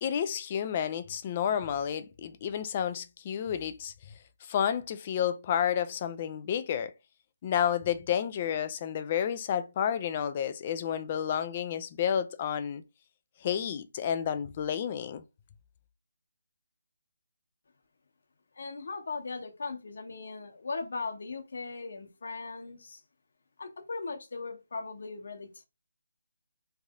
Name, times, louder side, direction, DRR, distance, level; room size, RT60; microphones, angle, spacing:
voice 1, 0.0-3.9 4.4-6.9 7.4-12.8 13.4-15.2, left 9 dB, 25° left, 0.4 m, -30 dB
voice 2, 18.5-23.0 23.6-25.6, left 4 dB, 55° left, 1.1 m, -38 dB
3.3 x 2.7 x 3.6 m
hypercardioid pair, 170°, 0 cm